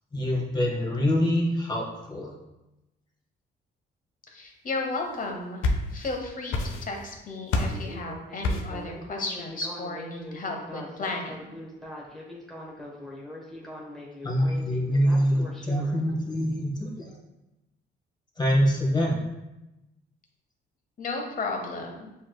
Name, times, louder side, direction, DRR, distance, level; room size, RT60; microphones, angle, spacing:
voice 1, 0.1-2.3 14.2-17.1 18.4-19.2, equal, 20° left, -2 dB, 1.3 m, -25 dB
voice 2, 4.3-5.7 5.9-11.5 21.0-22.1, left 3 dB, 45° left, 2 dB, 1.0 m, -34 dB
sound 1, 5.2-6.2 6.5-7.1 7.5-7.9 8.4-8.8, left 2 dB, 85° left, 0.6 m, -27 dB
Speech synthesizer, 7.7-16.0, left 1 dB, ahead, 1.1 m, -42 dB
7.1 x 3.1 x 2.3 m, 0.95 s
cardioid pair, 90°, 20 cm